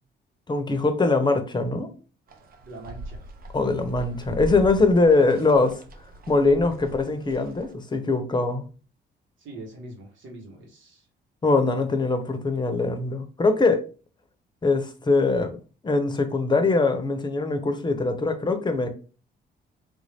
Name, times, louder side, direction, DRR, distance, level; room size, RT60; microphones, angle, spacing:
voice 1, 0.5-1.9 3.5-5.8 6.3-8.6 11.4-13.8 14.6-15.6 15.8-18.9, left 3 dB, 20° left, 0.7 m, -22 dB
sound 1, 2.3-7.7, right 2 dB, 50° right, 0.7 m, -40 dB
voice 2, 2.6-3.2 9.4-11.0, right 1 dB, 75° right, 1.3 m, -42 dB
3.5 x 2.6 x 3.4 m
cardioid pair, 90°, 20 cm